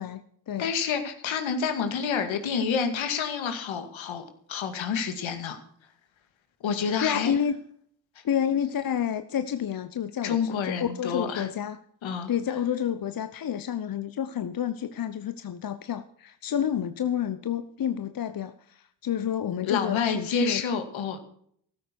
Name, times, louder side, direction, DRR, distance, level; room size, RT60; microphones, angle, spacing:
voice 1, 0.0-0.7 7.0-7.6 8.2-11.8 12.3-20.6, left 9 dB, 45° left, 11 dB, 0.9 m, -29 dB
voice 2, 0.6-5.6 6.6-7.3 10.2-11.5 12.0-12.3 19.6-21.2, left 6 dB, 70° left, 7 dB, 2.4 m, -28 dB
14.5 x 13.0 x 4.7 m, 0.65 s
supercardioid pair, 55°, 49 cm